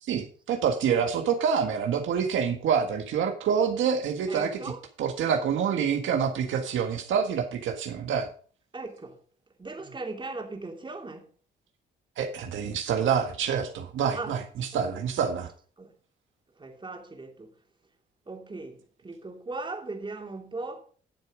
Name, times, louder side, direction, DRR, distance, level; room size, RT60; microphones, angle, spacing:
voice 1, 0.0-4.6 5.0-8.3 12.2-15.5, right 7 dB, 75° right, 1.7 m, -27 dB
voice 2, 4.3-4.8 8.7-9.2 9.6-11.3 14.1-14.3 14.7-14.9 15.8-15.9 16.6-17.5 18.3-20.8, right 3 dB, 25° right, 3.0 m, -38 dB
12.0 x 7.0 x 5.0 m
cardioid pair, 90°, 20 cm